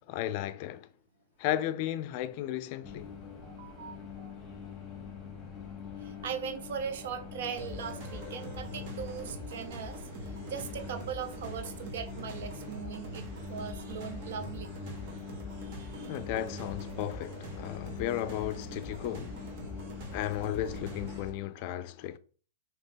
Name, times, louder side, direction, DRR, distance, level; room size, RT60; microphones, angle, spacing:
voice 1, 0.1-0.9 1.4-3.1 16.1-19.4 20.1-22.2, left 12 dB, 45° left, 0.4 m, -34 dB
sound 1, 2.8-21.2, left 6 dB, 15° left, 1.3 m, -44 dB
voice 2, 3.2-4.3 6.0-14.7 15.7-16.2 19.3-19.7, right 7 dB, 65° right, 0.6 m, -40 dB
sound 2, 7.6-21.3, right 1 dB, 45° right, 1.1 m, -44 dB
3.4 x 2.9 x 4.2 m
hypercardioid pair, 150°, 0 cm